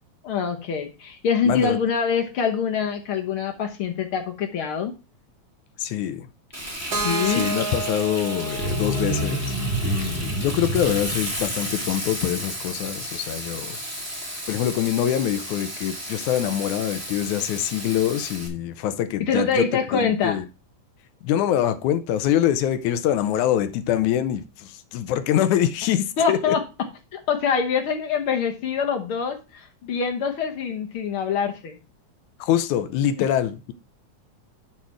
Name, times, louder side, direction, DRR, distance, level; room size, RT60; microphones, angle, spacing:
voice 1, 0.2-4.9 7.0-7.5 19.2-20.4 26.2-26.6 27.1-31.8, left 6 dB, 60° left, 1.5 m, -24 dB
voice 2, 1.5-1.8 5.8-6.3 7.3-9.6 9.8-13.8 14.5-19.7 19.9-20.5 21.2-26.6 32.4-33.7, left 11 dB, 85° left, 2.2 m, -24 dB
Frying (food), 6.5-18.5, equal, 5° right, 1.3 m, -33 dB
Keyboard (musical), 6.9-10.8, right 4 dB, 50° right, 1.6 m, -32 dB
sound 1, 8.5-13.3 13.6-13.7, right 1 dB, 75° right, 5.3 m, -29 dB
10.5 x 4.3 x 4.6 m
omnidirectional pair, 3.5 m